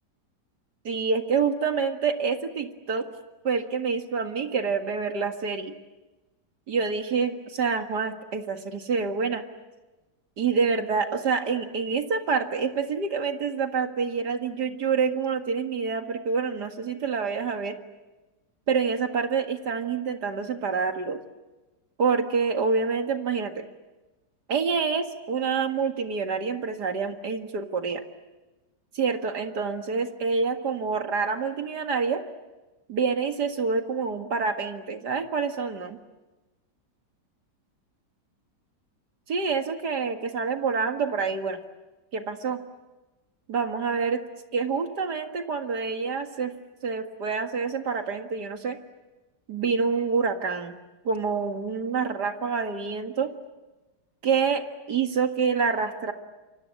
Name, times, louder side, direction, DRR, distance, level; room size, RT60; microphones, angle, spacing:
voice 1, 0.8-3.1 3.4-5.7 6.7-9.4 10.4-17.7 18.7-21.2 22.0-23.7 24.5-28.0 28.9-32.2 32.9-36.0 39.3-41.6 42.1-42.6 43.5-44.2 44.5-46.5 46.8-48.8 49.5-50.7 51.0-53.3 54.2-56.1, right 5 dB, 65° right, 6 dB, 2.4 m, -27 dB
28.5 x 24.5 x 8.4 m, 1.1 s
omnidirectional pair, 1.9 m